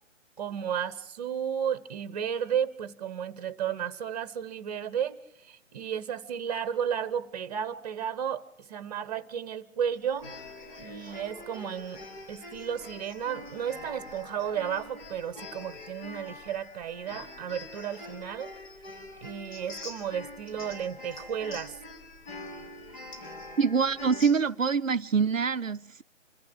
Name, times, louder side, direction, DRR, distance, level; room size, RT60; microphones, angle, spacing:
voice 1, 0.4-5.2 5.4-10.3 10.8-12.0 12.3-18.5 19.2-21.7, right 8 dB, 30° right, 1.4 m, -33 dB
sound 1, 10.1-24.3, left 2 dB, 35° left, 6.5 m, -44 dB
voice 2, 23.6-26.0, right 5 dB, 80° right, 0.8 m, -25 dB
26.0 x 14.5 x 7.7 m
figure-of-eight pair, 140°, 38 cm